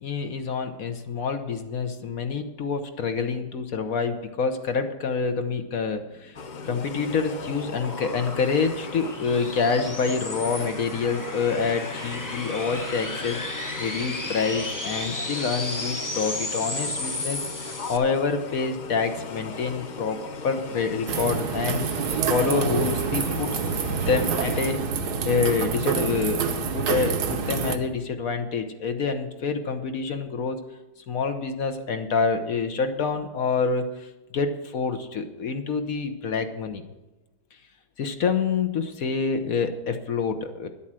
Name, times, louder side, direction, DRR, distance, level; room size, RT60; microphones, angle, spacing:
voice 1, 0.0-6.4 6.7-13.4 13.8-17.4 17.9-21.9 22.3-23.6 23.9-24.8 25.2-26.4 26.7-30.6 31.1-36.8 38.0-40.7, left 5 dB, 60° left, 7 dB, 1.2 m, -27 dB
sound 1, 6.3-18.0, left 2 dB, 20° left, 0.6 m, -34 dB
sound 2, 6.4-24.7, left 4 dB, 85° left, 0.4 m, -38 dB
sound 3, 21.1-27.8, right 6 dB, 65° right, 1.4 m, -27 dB
11.0 x 8.4 x 7.5 m, 1.0 s
omnidirectional pair, 1.9 m